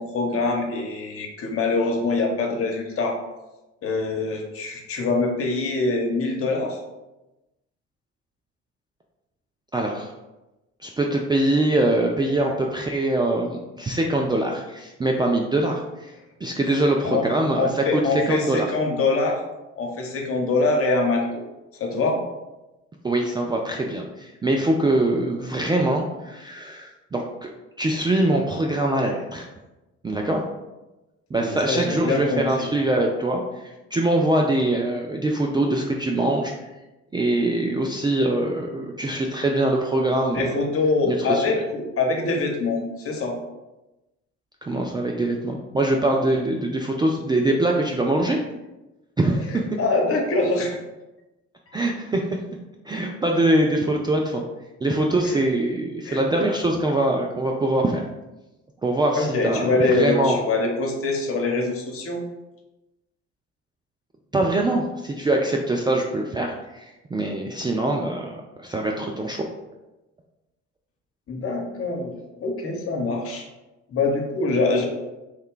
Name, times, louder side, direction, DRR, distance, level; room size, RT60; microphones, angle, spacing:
voice 1, 0.0-3.2 3.8-6.8 16.8-17.3 17.6-19.4 19.8-21.4 21.8-22.2 31.3-32.7 40.3-43.4 49.4-50.8 55.2-55.4 56.0-56.2 59.1-62.2 71.3-72.1 72.4-73.5 73.9-74.9, left 3 dB, 40° left, 1 dB, 0.9 m, -24 dB
voice 2, 9.7-10.1 10.8-16.1 16.4-18.7 23.0-27.2 27.8-29.5 30.0-30.4 31.3-36.5 37.1-40.5 41.1-41.4 44.6-48.4 49.2-49.6 51.7-52.2 52.9-54.4 54.8-58.0 58.8-60.4 64.3-69.4, right 1 dB, 15° right, 0 dB, 0.3 m, -23 dB
3.2 x 2.2 x 3.7 m, 1.0 s
hypercardioid pair, 55°, 33 cm